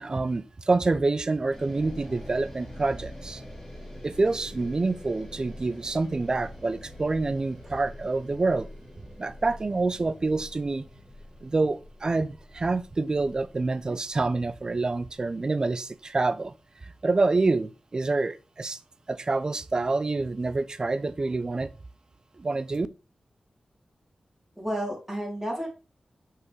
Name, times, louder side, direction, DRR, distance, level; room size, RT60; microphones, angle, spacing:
voice 1, 0.0-3.4 4.0-8.7 9.2-10.9 11.4-16.5 16.8-18.8 19.1-21.7 22.4-22.9, right 3 dB, 40° right, 0.4 m, -27 dB
sound 1, 1.5-15.8, equal, 15° left, 2.5 m, -45 dB
voice 2, 24.5-25.7, equal, 10° right, 3.2 m, -31 dB
5.9 x 5.5 x 3.2 m
wide cardioid pair, 85°, 2 cm